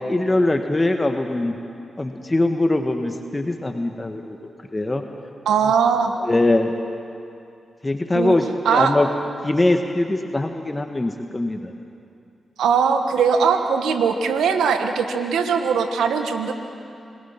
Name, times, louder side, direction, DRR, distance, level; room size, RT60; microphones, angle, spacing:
voice 1, 0.1-1.5 2.0-5.0 6.2-6.7 7.8-9.1 9.4-11.7, left 2 dB, 25° left, 5 dB, 1.6 m, -22 dB
voice 2, 5.4-6.1 8.1-8.4 8.6-8.9 12.6-16.5, right 6 dB, 85° right, 6 dB, 1.4 m, -20 dB
27.0 x 19.0 x 5.9 m, 2.5 s
supercardioid pair, 45°, 0 cm